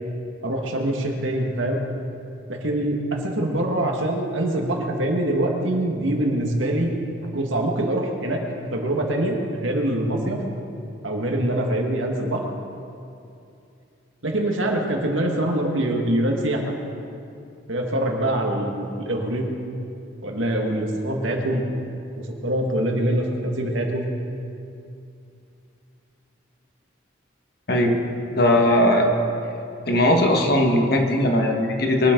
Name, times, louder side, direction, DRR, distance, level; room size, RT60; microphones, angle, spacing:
voice 1, 0.4-1.8 2.5-6.9 7.3-10.4 11.0-12.4 14.2-16.7 17.7-19.5 20.2-21.7 22.3-24.1, right 1 dB, 80° right, 1 dB, 1.9 m, -24 dB
voice 2, 27.7-28.0 28.3-29.1 29.9-32.1, left 1 dB, 50° left, 2 dB, 1.6 m, -19 dB
22.5 x 12.5 x 3.9 m, 2.6 s
head